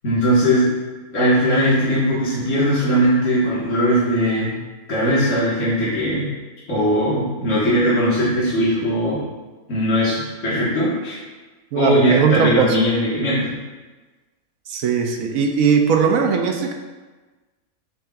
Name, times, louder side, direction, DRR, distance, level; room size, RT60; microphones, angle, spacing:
voice 1, 0.0-0.7 1.1-4.5 4.9-6.3 6.7-9.2 9.7-11.2 11.8-13.6, equal, 60° left, -9 dB, 2.0 m, -19 dB
voice 2, 11.7-12.9 14.7-16.7, right 6 dB, 75° right, 3 dB, 1.0 m, -19 dB
7.4 x 6.2 x 2.4 m, 1.3 s
omnidirectional pair, 1.5 m